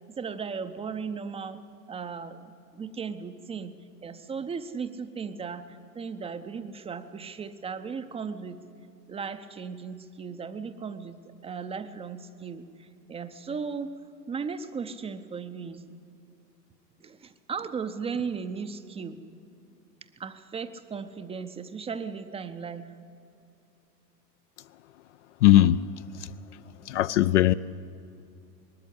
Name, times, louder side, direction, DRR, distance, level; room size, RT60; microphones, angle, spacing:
voice 1, 0.2-1.6 1.9-2.4 2.7-3.7 4.0-8.6 9.1-11.2 11.4-13.9 14.3-15.8 17.0-19.2 20.2-22.9, right 5 dB, 10° right, 0.6 m, -36 dB
voice 2, 25.4-25.8 26.9-27.5, left 14 dB, 50° left, 0.4 m, -19 dB
20.0 x 13.5 x 10.0 m
figure-of-eight pair, 85°, 50 cm